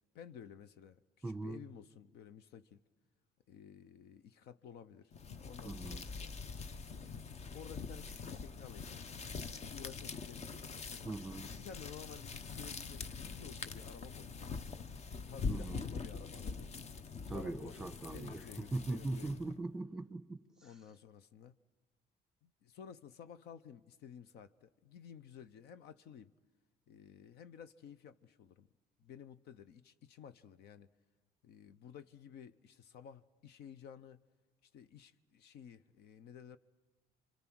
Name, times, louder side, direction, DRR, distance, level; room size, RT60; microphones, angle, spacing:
voice 1, 0.1-2.8 3.5-5.1 5.4-6.3 7.5-11.0 11.6-14.9 15.3-16.7 17.3-17.7 18.0-19.4 20.6-21.6 22.4-26.3 26.9-28.7 29.0-30.9 31.4-34.2 34.6-36.6, left 8 dB, 75° left, 0.8 m, -54 dB
voice 2, 1.2-1.6 5.6-6.0 11.0-11.5 15.5-15.9 17.3-20.7, right 2 dB, 5° right, 1.3 m, -41 dB
sound 1, 5.1-19.6, left 4 dB, 40° left, 0.8 m, -44 dB
29.0 x 25.0 x 6.2 m
cardioid pair, 110°, 17 cm